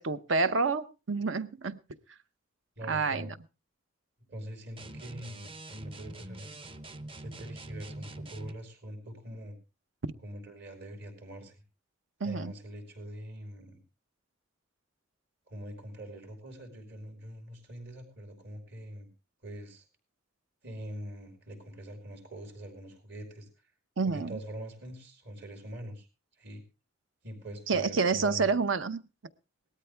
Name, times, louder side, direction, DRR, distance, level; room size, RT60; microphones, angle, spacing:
voice 1, 0.0-1.8 2.9-3.3 10.0-10.1 12.2-12.5 24.0-24.4 27.7-29.0, right 4 dB, 75° right, 13 dB, 0.8 m, -28 dB
voice 2, 2.8-3.3 4.3-6.6 7.2-9.6 10.2-11.6 12.2-13.8 15.5-19.1 19.4-19.9 20.6-23.5 24.0-26.1 26.4-26.6 27.2-28.5, equal, 55° right, 5 dB, 4.4 m, -43 dB
sound 1, 4.8-8.6, right 2 dB, 25° right, 0.7 m, -44 dB
18.5 x 13.5 x 3.4 m, 0.30 s
head